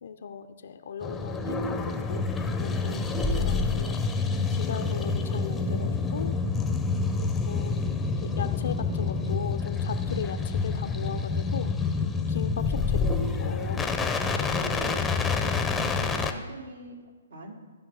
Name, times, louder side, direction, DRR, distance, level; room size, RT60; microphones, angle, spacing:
voice 1, 0.0-2.2 2.6-4.0 4.5-6.3 7.2-7.7 8.2-11.7 12.3-13.9, left 7 dB, 65° left, 6 dB, 0.6 m, -37 dB
sound 1, 1.0-16.3, left 4 dB, 10° left, 0.7 m, -27 dB
voice 2, 15.5-17.5, right 1 dB, 75° right, 0 dB, 2.7 m, -45 dB
15.5 x 5.3 x 5.5 m, 1.4 s
hypercardioid pair, 140°, 0 cm